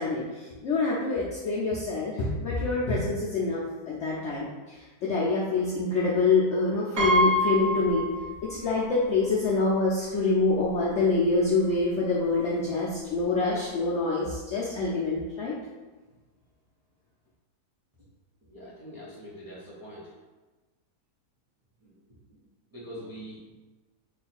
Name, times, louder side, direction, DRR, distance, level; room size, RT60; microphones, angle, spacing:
voice 1, 0.0-8.1 8.5-15.6, left 3 dB, 65° left, -5 dB, 0.7 m, -26 dB
Piano, 7.0-8.8 9.1-9.2 10.4-10.5 10.8-11.0, equal, 45° right, 1.0 m, -26 dB
voice 2, 18.5-20.1 21.8-22.0 22.3-22.4 22.7-23.5, equal, 20° right, -8 dB, 0.7 m, -43 dB
3.1 x 2.3 x 4.2 m, 1.2 s
omnidirectional pair, 1.7 m